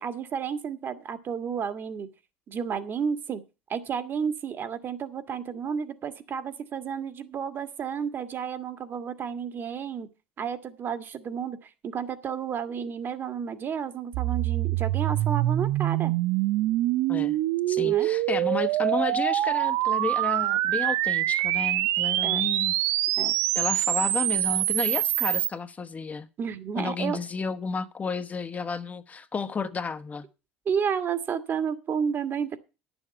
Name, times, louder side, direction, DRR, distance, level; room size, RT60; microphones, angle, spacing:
voice 1, 0.0-2.1 2.5-3.4 3.7-10.1 10.4-16.1 17.8-18.1 22.2-22.4 23.2-23.3 26.4-27.2 30.7-32.6, right 7 dB, 45° right, 1.7 m, -31 dB
sound 1, 14.1-25.5, right 15 dB, 65° right, 0.6 m, -25 dB
voice 2, 17.7-22.7 23.5-26.3 26.7-30.3, left 5 dB, 30° left, 1.1 m, -32 dB
11.0 x 7.1 x 6.9 m
hypercardioid pair, 75°, 5 cm